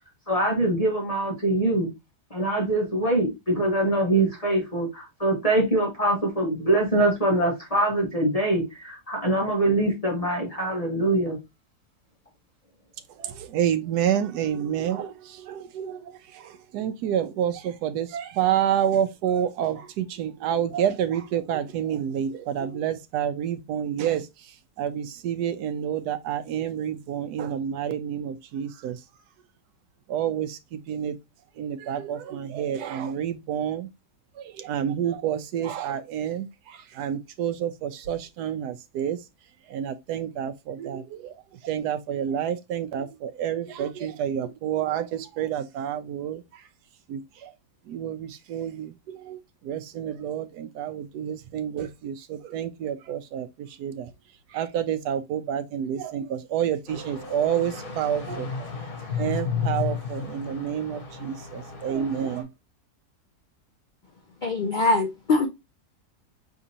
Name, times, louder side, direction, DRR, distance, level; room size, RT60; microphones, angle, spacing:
voice 1, 0.3-1.9 2.3-11.4, right 1 dB, 25° left, 1.3 m, -23 dB
voice 2, 13.2-16.0 16.4-24.3 24.8-29.0 30.1-31.1 31.6-33.9 34.4-36.5 37.0-39.2 39.7-41.3 41.6-46.4 47.1-47.5 47.9-49.4 49.6-53.5 53.8-54.1 54.5-58.5 59.2-62.5, right 9 dB, 85° right, 1.2 m, -28 dB
sound 1, 56.9-62.4, left 6 dB, 65° left, 1.6 m, -33 dB
voice 3, 64.4-65.5, left 3 dB, 80° left, 0.4 m, -22 dB
5.0 x 3.5 x 2.8 m
omnidirectional pair, 1.7 m